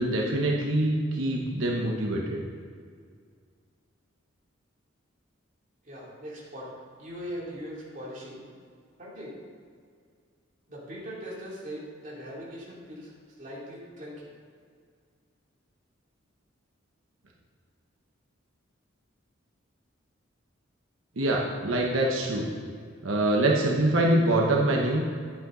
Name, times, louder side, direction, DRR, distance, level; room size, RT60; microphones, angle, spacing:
voice 1, 0.0-2.4 21.2-22.5 23.0-25.0, right 1 dB, 90° right, -2 dB, 1.1 m, -24 dB
voice 2, 5.8-6.7 7.0-8.4 9.0-9.4 10.7-13.1 13.4-14.3, equal, 40° right, -6 dB, 2.8 m, -40 dB
11.0 x 8.3 x 3.9 m, 2.1 s
head